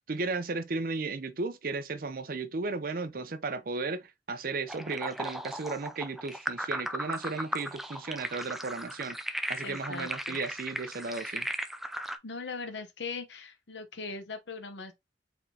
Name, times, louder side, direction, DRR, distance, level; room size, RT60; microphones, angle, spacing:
voice 1, 0.1-11.5, right 3 dB, 50° right, 0.6 m, -35 dB
sound 1, 4.7-12.2, right 1 dB, ahead, 0.4 m, -37 dB
voice 2, 9.6-10.4 12.2-14.9, left 4 dB, 75° left, 0.9 m, -40 dB
4.9 x 3.7 x 2.8 m
head